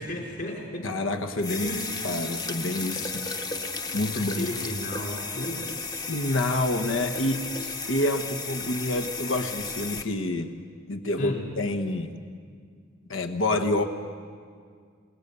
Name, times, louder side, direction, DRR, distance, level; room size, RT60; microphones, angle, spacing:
voice 1, 0.0-1.0 1.5-2.3 4.1-6.1 11.2-11.4, left 1 dB, 50° left, 0 dB, 3.7 m, -35 dB
voice 2, 0.8-3.3 3.9-4.5 6.1-10.5 10.9-12.1 13.1-13.8, left 2 dB, 85° left, 8 dB, 1.3 m, -28 dB
sound 1, 1.4-10.0, left 4 dB, 20° left, 0.9 m, -34 dB
28.0 x 18.0 x 6.8 m, 2.1 s
head